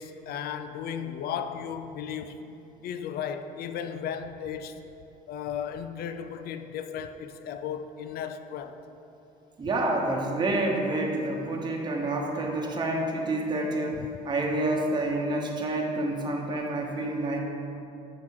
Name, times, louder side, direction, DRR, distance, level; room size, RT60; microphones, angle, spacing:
voice 1, 0.0-2.4 2.8-4.7 5.3-8.8 13.9-14.1, left 8 dB, 65° left, 0.5 m, -35 dB
voice 2, 9.6-17.4, right 2 dB, 25° right, 1.1 m, -28 dB
7.5 x 6.0 x 4.7 m
cardioid pair, 110°, 17 cm